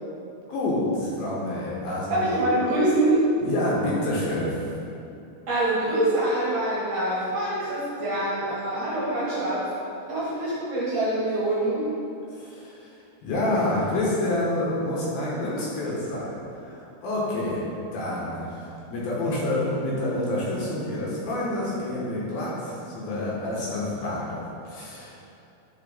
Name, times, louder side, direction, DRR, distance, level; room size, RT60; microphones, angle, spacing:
voice 1, 0.5-2.3 3.4-4.6 12.3-12.9 13.2-17.6 17.9-24.4 24.7-25.2, left 1 dB, 65° left, -6 dB, 3.0 m, -28 dB
voice 2, 2.1-3.3 5.5-9.7 10.1-11.9, right 1 dB, 55° right, -8 dB, 2.5 m, -25 dB
11.0 x 5.0 x 4.0 m, 2.7 s
omnidirectional pair, 4.9 m